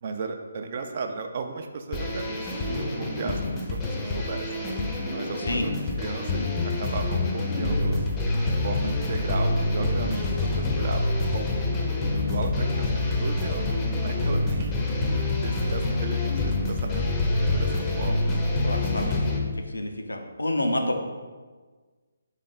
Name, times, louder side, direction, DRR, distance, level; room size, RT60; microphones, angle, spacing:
voice 1, 0.0-3.5 3.9-4.5 5.1-6.5 6.8-8.0 8.4-11.5 12.1-14.9 15.4-18.4, right 4 dB, 45° right, 5 dB, 0.4 m, -35 dB
sound 1, 1.9-19.4, left 2 dB, 15° left, 0.6 m, -26 dB
voice 2, 5.4-5.7 18.6-19.2 19.5-21.0, left 1 dB, 85° left, 4 dB, 0.6 m, -28 dB
3.5 x 3.3 x 4.0 m, 1.4 s
figure-of-eight pair, 145°, 0 cm